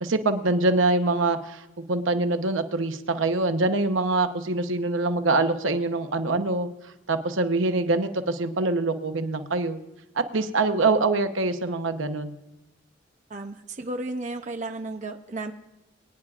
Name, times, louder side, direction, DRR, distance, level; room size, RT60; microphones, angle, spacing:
voice 1, 0.0-6.7 7.1-9.8 10.2-12.3, right 2 dB, 85° right, 8 dB, 0.9 m, -24 dB
voice 2, 13.3-15.5, right 2 dB, 40° right, 5 dB, 0.7 m, -33 dB
23.0 x 9.9 x 2.4 m, 1.0 s
head